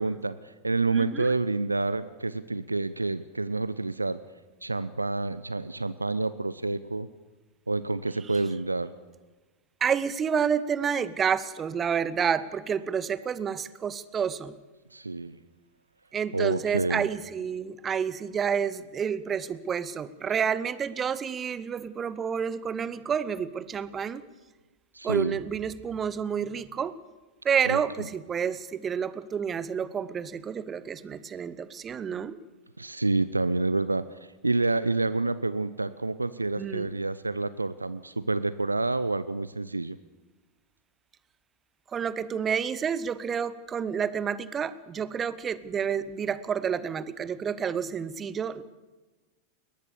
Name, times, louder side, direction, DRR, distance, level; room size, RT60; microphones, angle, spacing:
voice 1, 0.0-4.2 4.6-7.1 7.7-8.9 14.9-15.4 16.3-17.1 24.9-25.4 27.7-27.8 32.8-34.1 34.4-40.0, right 3 dB, 80° right, 16 dB, 0.6 m, -28 dB
voice 2, 0.9-1.3 8.2-8.3 9.8-14.6 16.1-24.2 25.0-27.0 27.4-32.4 36.6-37.0 41.9-48.6, right 7 dB, 20° right, 17 dB, 1.0 m, -29 dB
21.5 x 19.5 x 6.9 m, 1.2 s
figure-of-eight pair, 90°, 0 cm